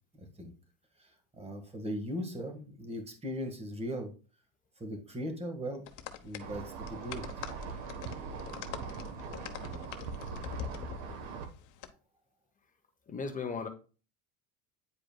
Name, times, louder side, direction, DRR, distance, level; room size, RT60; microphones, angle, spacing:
voice 1, 0.1-0.5 1.0-1.1 1.4-4.1 4.8-5.8 6.2-7.2, equal, 15° right, 5 dB, 1.7 m, -38 dB
sound 1, 5.9-11.9, left 9 dB, 55° left, 0.9 m, -44 dB
sound 2, 6.4-11.5, right 6 dB, 75° right, 1.3 m, -41 dB
voice 2, 13.1-13.7, left 5 dB, 20° left, 6 dB, 0.9 m, -36 dB
9.3 x 4.8 x 2.3 m, 0.35 s
supercardioid pair, 105°, 38 cm